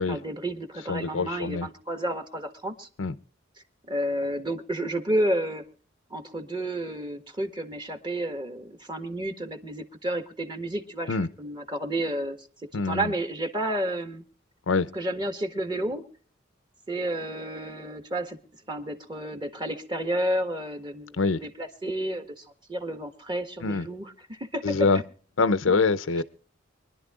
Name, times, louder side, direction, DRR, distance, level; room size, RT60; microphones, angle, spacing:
voice 1, 0.0-2.9 3.9-5.6 6.1-12.4 12.7-14.2 14.9-16.0 16.9-18.4 18.7-24.6 26.2-26.3, right 1 dB, 25° right, 1.5 m, -31 dB
voice 2, 0.9-1.7 3.0-3.1 11.1-11.3 12.7-13.1 14.7-14.9 21.1-21.4 23.6-23.9 24.6-25.0 25.4-26.2, left 4 dB, 80° left, 0.6 m, -24 dB
24.5 x 11.5 x 2.4 m
head